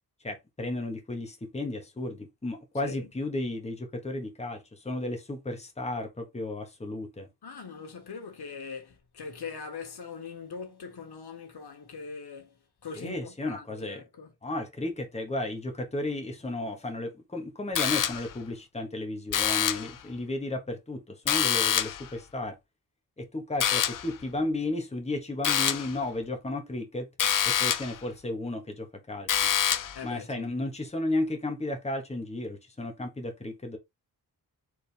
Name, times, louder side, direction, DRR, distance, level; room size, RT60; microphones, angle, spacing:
voice 1, 0.2-7.3 12.9-14.0 14.4-22.6 23.2-27.1 27.4-29.5 30.0-33.8, left 2 dB, 15° left, 1.1 m, -34 dB
voice 2, 7.4-14.3 29.9-30.5, left 5 dB, 80° left, 1.4 m, -41 dB
sound 1, 17.8-18.4 19.3-20.0 21.3-22.1 23.6-24.1 25.4-26.0 27.2-28.0 29.3-30.0, left 9 dB, 55° left, 0.5 m, -26 dB
4.6 x 3.5 x 3.3 m
wide cardioid pair, 120°, 38 cm